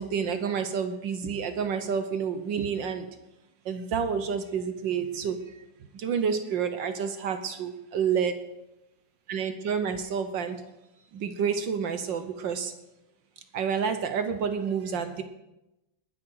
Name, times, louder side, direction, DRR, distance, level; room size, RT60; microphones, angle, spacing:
voice 1, 0.0-3.1 3.6-5.4 5.9-8.3 9.3-10.6 11.1-12.7 13.5-15.2, right 6 dB, 65° right, 9 dB, 1.4 m, -29 dB
20.0 x 9.8 x 4.7 m, 0.96 s
omnidirectional pair, 2.4 m